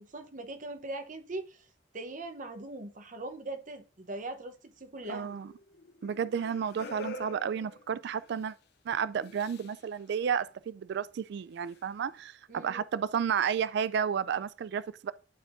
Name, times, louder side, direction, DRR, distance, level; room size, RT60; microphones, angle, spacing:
voice 1, 0.1-1.6 1.9-5.3 12.5-12.8, right 2 dB, 45° right, 0.8 m, -40 dB
sound 1, 5.0-8.5 9.2-9.9 11.7-11.8, left 2 dB, 60° left, 0.5 m, -46 dB
voice 2, 5.1-5.5 6.0-8.5 8.9-15.1, right 7 dB, 60° right, 0.3 m, -32 dB
11.5 x 4.3 x 2.5 m
head